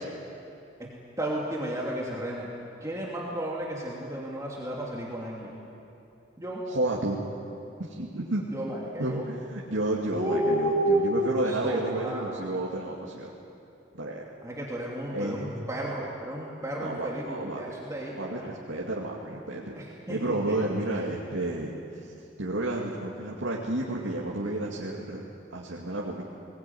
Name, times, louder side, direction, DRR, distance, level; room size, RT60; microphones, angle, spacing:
voice 1, 1.2-2.5 2.8-5.6 6.4-6.6 8.4-9.3 10.2-12.4 14.4-18.5 19.8-21.1, right 1 dB, 15° right, -4 dB, 2.7 m, -32 dB
voice 2, 6.7-7.2 7.8-8.4 9.0-13.3 13.9-14.2 15.1-15.5 16.8-17.6 18.1-19.8 20.1-21.7 22.0-22.1 22.4-25.2 25.5-26.2, right 2 dB, 90° right, -3 dB, 2.5 m, -31 dB
23.0 x 20.0 x 9.5 m, 2.8 s
head